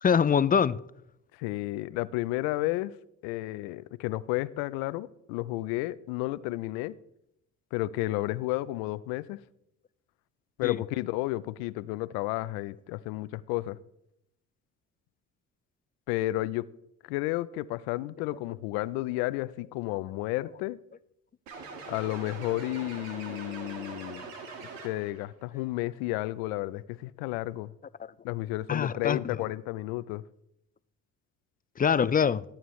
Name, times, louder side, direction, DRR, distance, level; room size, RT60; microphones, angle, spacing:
voice 1, 0.0-0.8 10.6-10.8 23.7-23.8 28.0-28.1 28.7-29.2 31.8-32.4, left 7 dB, 25° left, 0.4 m, -24 dB
voice 2, 1.3-2.9 3.2-6.9 7.7-9.4 10.6-13.8 16.1-16.6 17.1-20.8 21.9-24.2 24.6-27.7 28.2-30.2, left 18 dB, 80° left, 0.6 m, -32 dB
sound 1, 21.5-25.2, right 4 dB, 90° right, 1.8 m, -42 dB
18.0 x 8.8 x 3.2 m
hypercardioid pair, 65°, 38 cm